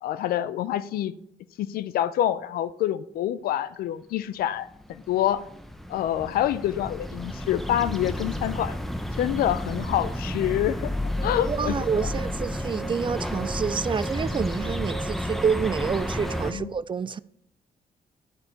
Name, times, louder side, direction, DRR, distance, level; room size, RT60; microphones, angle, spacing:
voice 1, 0.0-1.2 1.6-5.4 5.9-8.8 9.2-12.1 16.5-16.7, left 11 dB, 80° left, 0.4 m, -27 dB
sound 1, 4.7-16.5, left 1 dB, ahead, 0.9 m, -32 dB
sound 2, 11.2-16.6, right 4 dB, 55° left, 2.4 m, -40 dB
voice 2, 11.5-17.2, right 6 dB, 35° right, 0.4 m, -28 dB
10.5 x 3.9 x 4.5 m
supercardioid pair, 55°, 15 cm